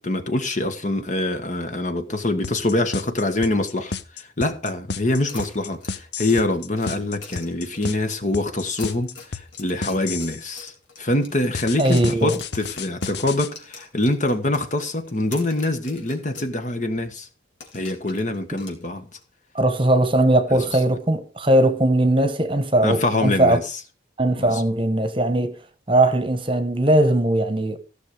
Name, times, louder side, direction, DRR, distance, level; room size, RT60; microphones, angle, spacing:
voice 1, 0.0-10.7 11.0-17.3 17.7-19.1 20.5-20.8 22.8-23.6 24.4-24.6, left 2 dB, 40° left, 1.5 m, -25 dB
sound 1, 2.4-10.4 11.5-13.5, left 5 dB, 60° left, 0.8 m, -31 dB
sound 2, 5.3-8.1 8.6-11.6 11.8-16.5 16.8-16.9 17.6-19.2, left 4 dB, 85° left, 3.6 m, -43 dB
voice 2, 11.8-12.3 18.5-18.6 19.5-23.6 24.2-25.6 25.9-27.8, right 1 dB, 25° right, 1.1 m, -19 dB
15.5 x 6.7 x 5.0 m
head